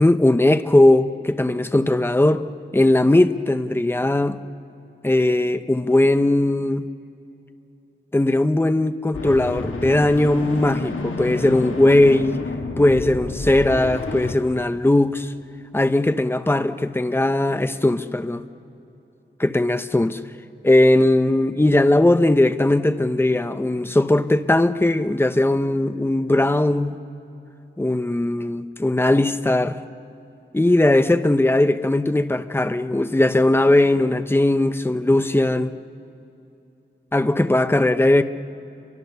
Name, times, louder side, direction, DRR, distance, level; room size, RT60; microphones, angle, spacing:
voice 1, 0.0-2.4 2.7-4.4 5.0-6.9 8.1-12.4 12.8-15.3 15.7-18.4 19.4-20.2 20.6-27.0 27.8-29.8 30.5-35.7 37.1-38.2, left 1 dB, 10° left, 0.8 m, -19 dB
sound 1, 9.1-14.3, left 3 dB, 80° left, 2.1 m, -30 dB
30.0 x 24.5 x 6.8 m
wide cardioid pair, 80°, 21 cm